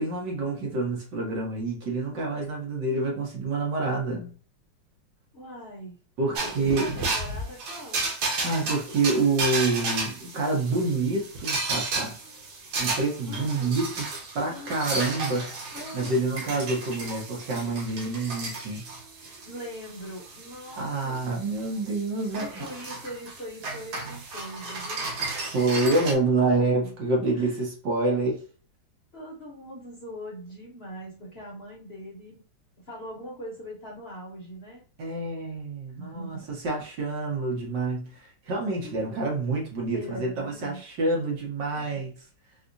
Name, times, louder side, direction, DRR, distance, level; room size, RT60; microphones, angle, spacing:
voice 1, 0.0-4.4 6.2-6.9 8.4-12.2 12.8-14.1 14.4-18.9 20.8-22.7 25.1-25.2 25.5-28.4 35.0-42.1, right 3 dB, 70° right, 1.8 m, -27 dB
voice 2, 5.3-6.0 6.4-8.1 13.3-13.8 14.5-14.7 15.7-16.4 19.4-21.4 22.4-25.1 26.2-26.9 27.3-27.6 29.1-32.4 32.8-34.9 35.9-36.5 38.8-39.0 39.9-40.8 41.7-42.0, equal, 40° left, 1.1 m, -41 dB
sound 1, 6.3-26.1, right 3 dB, 85° right, 1.7 m, -33 dB
4.2 x 2.4 x 2.6 m
omnidirectional pair, 2.0 m